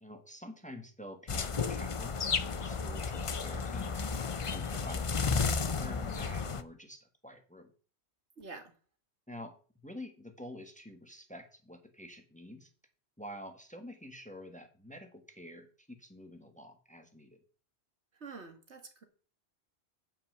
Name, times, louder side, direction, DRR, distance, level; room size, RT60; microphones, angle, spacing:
voice 1, 0.0-4.0 4.4-7.7 9.3-9.6 9.8-12.7 13.2-17.4, equal, 5° left, 6 dB, 1.6 m, -48 dB
sound 1, 1.3-6.6, left 5 dB, 35° left, 0.6 m, -33 dB
voice 2, 8.4-8.7 18.2-19.0, right 4 dB, 75° right, 7 dB, 2.2 m, -47 dB
10.0 x 5.7 x 8.0 m, 0.40 s
omnidirectional pair, 1.2 m